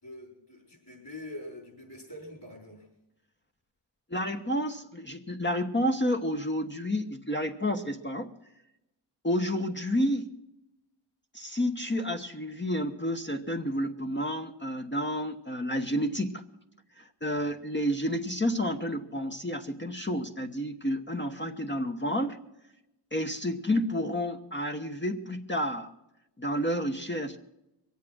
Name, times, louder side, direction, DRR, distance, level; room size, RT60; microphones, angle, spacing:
voice 1, 0.0-2.9, left 1 dB, 50° left, 2 dB, 5.9 m, -44 dB
voice 2, 4.1-8.3 9.2-10.3 11.3-16.4 17.0-22.4 23.1-25.9 26.4-27.4, equal, 20° left, 4 dB, 1.0 m, -30 dB
22.5 x 8.4 x 6.2 m, 0.90 s
wide cardioid pair, 50°, 50 cm